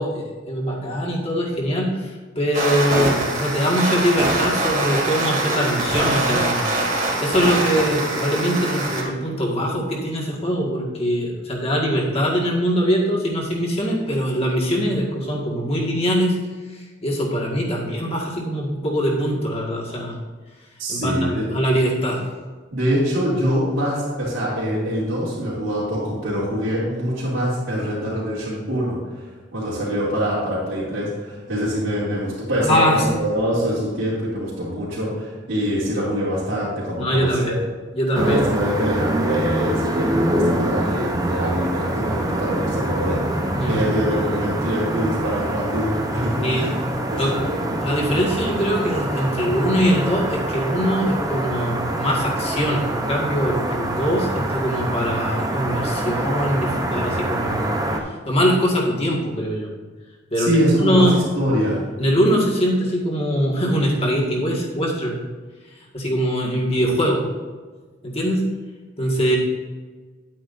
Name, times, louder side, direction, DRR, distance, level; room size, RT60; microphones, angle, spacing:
voice 1, 0.0-6.7 7.2-16.4 16.7-20.2 20.9-22.3 32.6-33.2 37.0-37.6 37.9-38.5 43.5-43.8 46.4-46.7 47.1-47.4 47.8-57.7 58.3-59.7 60.3-61.2 62.0-65.2 65.9-67.2 68.0-68.4 69.0-69.4, equal, 30° left, -3 dB, 1.9 m, -22 dB
sound 1, 2.5-9.0, right 2 dB, 40° right, 2.4 m, -23 dB
voice 2, 20.8-21.5 22.7-29.2 29.5-37.6 38.2-46.7 47.1-47.6 60.4-61.9, equal, 85° right, -11 dB, 3.0 m, -24 dB
sound 2, 38.1-58.0, right 1 dB, 20° right, 0.8 m, -25 dB
11.0 x 9.0 x 2.7 m, 1.4 s
head